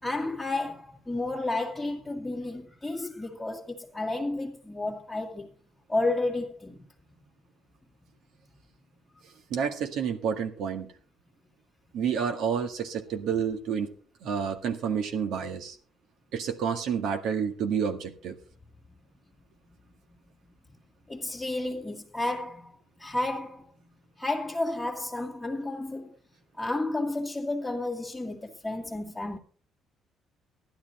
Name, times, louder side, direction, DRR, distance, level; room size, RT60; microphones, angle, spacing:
voice 1, 0.0-5.5 5.9-6.8 9.1-9.2 21.1-23.7 24.2-26.2 26.6-29.4, left 2 dB, 5° left, 2.0 m, -32 dB
voice 2, 9.5-10.9 11.9-13.9 14.2-15.8 16.3-18.4, right 7 dB, 75° right, 1.8 m, -29 dB
14.0 x 12.0 x 4.4 m
cardioid pair, 125°, 0 cm